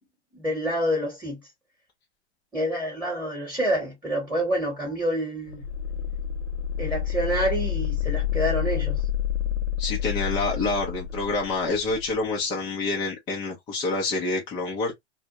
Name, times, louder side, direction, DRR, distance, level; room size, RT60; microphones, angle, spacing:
voice 1, 0.3-1.4 2.5-5.6 6.8-9.0, equal, 5° right, 1.0 m, -27 dB
sound 1, 5.5-12.1, left 9 dB, 75° left, 0.5 m, -29 dB
voice 2, 9.8-14.9, left 3 dB, 15° left, 0.4 m, -27 dB
2.2 x 2.0 x 2.8 m
hypercardioid pair, 125°, 35 cm